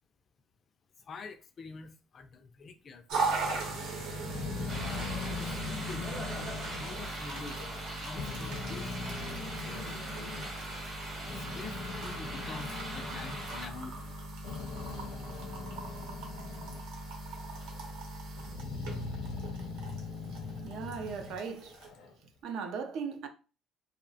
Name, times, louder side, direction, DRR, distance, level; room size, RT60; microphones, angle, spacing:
voice 1, 1.0-4.3 5.4-6.3 6.7-7.7 8.0-10.2 11.3-14.1, left 4 dB, 30° left, 0.3 m, -47 dB
sound 1, 3.1-21.9, right 3 dB, 75° right, 0.9 m, -40 dB
Growling, 4.1-7.8 8.1-10.5 11.0-16.9 17.2-17.9 18.4-22.1, left 4 dB, 80° left, 0.6 m, -41 dB
sound 2, 4.7-13.7, right 1 dB, 30° right, 0.9 m, -41 dB
voice 2, 20.6-21.8 22.2-23.3, right 6 dB, 60° right, 0.4 m, -38 dB
2.7 x 2.0 x 2.7 m
cardioid pair, 160°, 0 cm